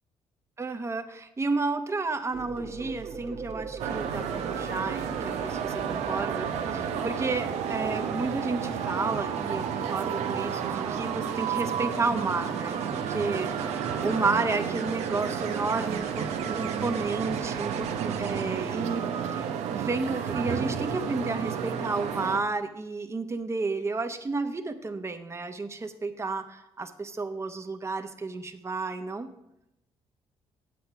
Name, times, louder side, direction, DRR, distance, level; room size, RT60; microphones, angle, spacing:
voice 1, 0.6-29.3, right 3 dB, 25° right, 7 dB, 0.9 m, -32 dB
sound 1, 2.3-18.4 20.4-20.6, right 5 dB, 75° right, 1.4 m, -39 dB
sound 2, 3.8-22.4, right 8 dB, 90° right, 0.8 m, -31 dB
8.6 x 7.7 x 5.8 m, 0.83 s
cardioid pair, 80°, 11 cm